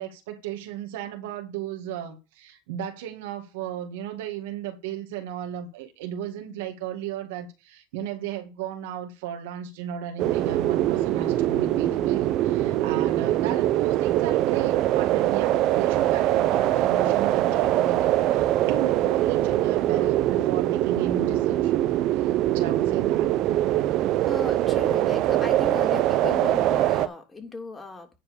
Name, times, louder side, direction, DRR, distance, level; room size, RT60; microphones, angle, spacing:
voice 1, 0.0-21.8 22.1-23.3, right 9 dB, 80° right, 2.1 m, -35 dB
sound 1, 10.2-27.1, right 14 dB, 60° right, 0.9 m, -23 dB
voice 2, 24.3-28.1, left 3 dB, 20° left, 3.1 m, -36 dB
10.0 x 4.6 x 6.8 m
hypercardioid pair, 80°, 0 cm